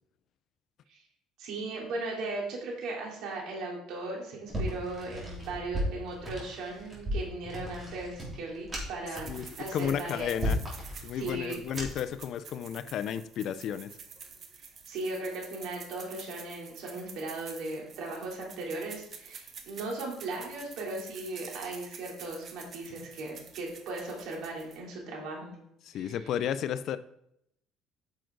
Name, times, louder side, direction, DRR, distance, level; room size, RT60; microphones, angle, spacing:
voice 1, 1.4-10.3 11.1-11.5 14.9-25.6 25.9-26.2, right 2 dB, 70° right, -2 dB, 3.5 m, -37 dB
sound 1, 4.5-12.1, equal, 20° right, 3.6 m, -36 dB
sound 2, 9.1-24.9, right 6 dB, 45° right, 1.3 m, -49 dB
voice 2, 9.7-10.6 11.0-13.9 25.8-27.0, left 9 dB, 55° left, 13 dB, 0.5 m, -32 dB
9.2 x 6.4 x 3.9 m, 0.75 s
cardioid pair, 120°, 0 cm